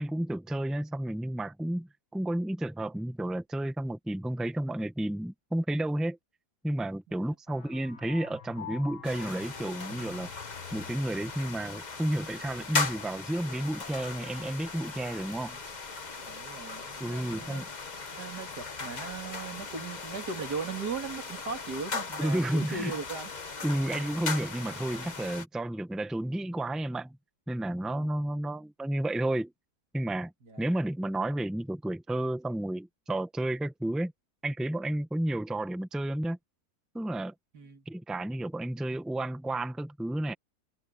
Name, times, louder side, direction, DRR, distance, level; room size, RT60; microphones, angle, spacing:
voice 1, 0.0-6.2 6.6-10.3 10.7-15.6 17.0-17.7 22.2-22.9 23.6-27.2 27.5-29.5 29.9-30.3 30.6-34.1 34.4-36.4 36.9-37.3 37.8-40.3, right 1 dB, ahead, 1.0 m, -31 dB
sound 1, 7.5-11.4, left 9 dB, 55° left, 1.6 m, -47 dB
sound 2, 9.0-25.4, left 4 dB, 30° left, 1.2 m, -38 dB
voice 2, 16.2-17.7 18.1-23.3 27.9-28.1 30.4-30.7 37.5-37.9, right 5 dB, 80° right, 3.3 m, -38 dB
omnidirectional pair, 1.7 m